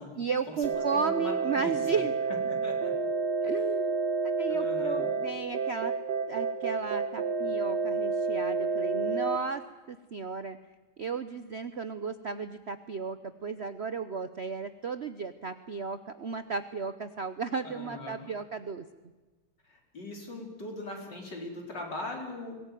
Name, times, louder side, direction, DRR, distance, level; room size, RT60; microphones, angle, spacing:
voice 1, 0.2-2.1 3.4-3.9 4.4-5.9 6.3-10.6 11.0-18.8, right 5 dB, 80° right, 11 dB, 0.5 m, -34 dB
sound 1, 0.6-9.4, right 4 dB, 50° right, 1.9 m, -30 dB
voice 2, 0.9-2.0 2.3-3.1 3.4-3.5 4.5-5.1 17.5-18.3 19.7-22.6, left 2 dB, 50° left, 1 dB, 4.8 m, -40 dB
23.5 x 19.5 x 9.2 m, 1.2 s
omnidirectional pair, 2.4 m